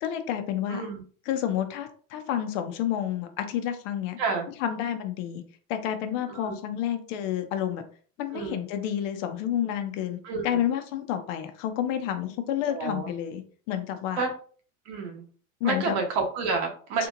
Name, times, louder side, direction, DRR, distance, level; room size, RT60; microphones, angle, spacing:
voice 1, 0.0-0.8 1.3-4.2 4.6-5.4 5.7-7.8 8.2-10.2 10.4-14.2 15.6-16.0, left 10 dB, 65° left, 7 dB, 0.8 m, -29 dB
voice 2, 0.7-1.0 4.2-4.5 6.3-6.6 8.3-8.6 10.2-10.6 12.7-13.1 14.2-14.3 14.8-15.2 15.6-17.1, right 4 dB, 65° right, 2 dB, 1.2 m, -29 dB
3.5 x 2.9 x 2.5 m, 0.43 s
hypercardioid pair, 90°, 41 cm